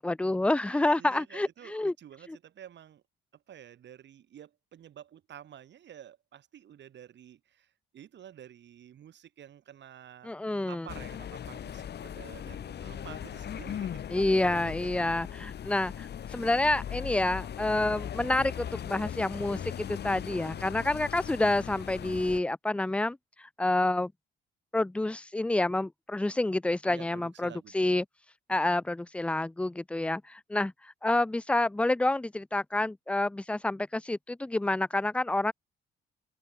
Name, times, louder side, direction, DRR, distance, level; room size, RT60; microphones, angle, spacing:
voice 1, 0.0-1.9 2.3-2.4 10.2-10.9 14.1-23.2 23.6-24.1 24.7-28.0 28.5-30.7 31.0-35.5, left 2 dB, 5° left, 0.4 m, -28 dB
voice 2, 0.7-3.0 3.3-10.3 10.7-14.9 20.4-20.9 26.8-28.0, right 10 dB, 65° right, 3.1 m, -50 dB
sound 1, 10.9-22.4, left 9 dB, 55° left, 1.7 m, -39 dB
open air
cardioid pair, 90°, 20 cm